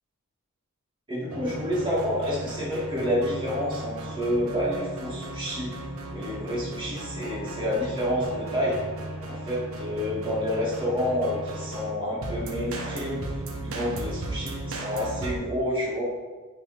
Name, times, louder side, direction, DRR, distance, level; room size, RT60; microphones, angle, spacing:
voice 1, 1.1-5.7 6.1-8.8 9.2-13.2 13.6-16.0, equal, 20° right, -8 dB, 2.2 m, -29 dB
sound 1, 1.3-15.4, right 2 dB, 65° right, 1.0 m, -36 dB
9.0 x 4.1 x 4.2 m, 1.4 s
head